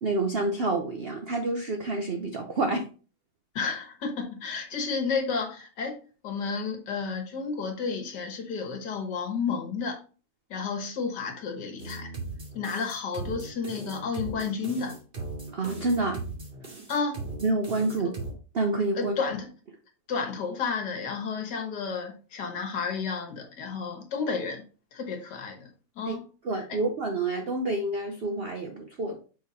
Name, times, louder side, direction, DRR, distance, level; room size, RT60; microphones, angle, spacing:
voice 1, 0.0-2.9 15.5-16.2 17.4-18.2 18.5-19.1 26.1-26.2 26.4-29.2, right 2 dB, 60° right, 4 dB, 0.6 m, -28 dB
voice 2, 3.6-6.0 6.2-10.0 10.5-12.1 12.5-15.0 16.9-17.2 19.0-19.5 20.1-24.6 24.9-26.3 26.7-26.8, left 5 dB, 65° left, 4 dB, 1.8 m, -31 dB
sound 1, 11.8-18.3, right 3 dB, 30° right, 2.0 m, -38 dB
6.0 x 3.9 x 4.1 m, 0.36 s
omnidirectional pair, 2.0 m